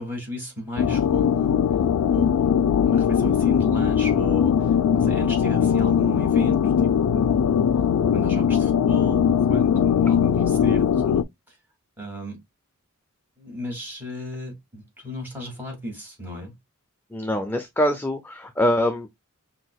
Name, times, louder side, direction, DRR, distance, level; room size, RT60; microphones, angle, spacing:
voice 1, 0.0-1.7 2.1-2.5 2.8-7.7 8.1-11.6 12.0-12.4 13.4-16.5, equal, 10° right, 2.3 m, -35 dB
sound 1, 0.8-11.2, left 8 dB, 80° left, 0.4 m, -20 dB
voice 2, 17.1-19.2, left 1 dB, 10° left, 0.4 m, -24 dB
5.8 x 2.8 x 2.2 m
head